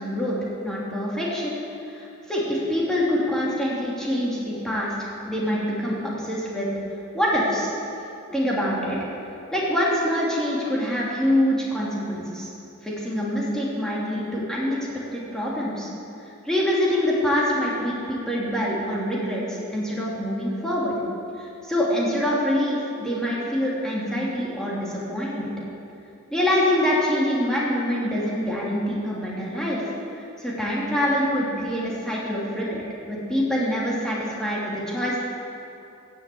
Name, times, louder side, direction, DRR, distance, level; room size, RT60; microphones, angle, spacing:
voice 1, 0.0-1.6 1.9-4.9 5.2-6.7 7.1-7.7 8.3-9.0 9.5-12.5 12.8-14.8 15.1-15.9 16.2-21.0 21.4-25.5 26.3-29.9 30.4-32.8 33.1-35.2, equal, 5° left, -6 dB, 2.7 m, -25 dB
14.5 x 7.6 x 8.6 m, 2.7 s
head